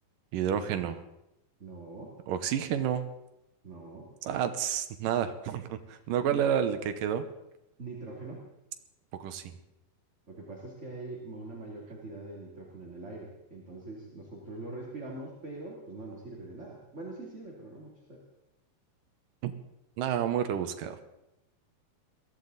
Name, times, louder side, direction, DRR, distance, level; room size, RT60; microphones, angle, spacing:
voice 1, 0.3-1.0 2.3-3.1 4.2-7.2 9.2-9.4 19.4-19.5 20.0-21.0, right 9 dB, 70° right, 9 dB, 2.4 m, -30 dB
voice 2, 1.6-2.1 3.6-4.1 6.3-6.4 7.8-8.5 10.3-18.2, right 2 dB, 20° right, -3 dB, 2.4 m, -43 dB
22.5 x 15.5 x 4.0 m, 0.89 s
omnidirectional pair, 4.4 m